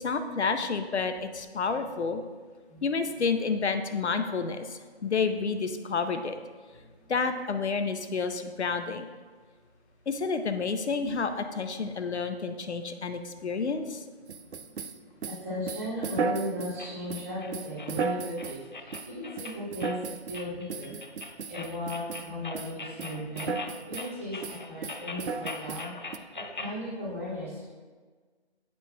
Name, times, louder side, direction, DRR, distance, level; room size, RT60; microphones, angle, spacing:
voice 1, 0.0-2.2 2.8-6.4 7.1-9.1 10.1-14.0, left 4 dB, 85° left, 8 dB, 0.7 m, -30 dB
sound 1, 14.3-16.8 17.1-18.6 18.9-19.1 19.4-20.4 20.7-22.3 22.5-22.7 23.0-24.1 24.4-26.2, right 5 dB, 80° right, 0.5 m, -35 dB
voice 2, 15.4-20.9 21.5-23.6 23.8-26.2 26.5-27.7, left 1 dB, 15° right, -10 dB, 1.6 m, -36 dB
sound 2, 16.8-26.8, left 3 dB, 45° left, 0.5 m, -42 dB
9.6 x 5.2 x 2.3 m, 1.5 s
hypercardioid pair, 175°, 33 cm